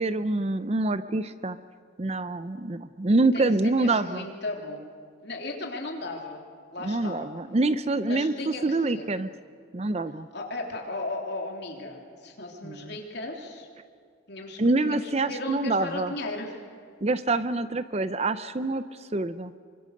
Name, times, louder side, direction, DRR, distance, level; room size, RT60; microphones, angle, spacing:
voice 1, 0.0-1.6 2.0-4.3 6.8-9.3 9.7-10.3 12.6-12.9 14.6-16.1 17.0-18.8 19.1-19.5, right 2 dB, 30° right, 13 dB, 0.5 m, -26 dB
voice 2, 3.3-4.8 5.2-6.4 6.7-7.3 8.0-9.1 10.3-13.7 14.3-16.7, left 2 dB, 55° left, 1 dB, 3.3 m, -36 dB
27.5 x 24.5 x 6.6 m, 2.1 s
head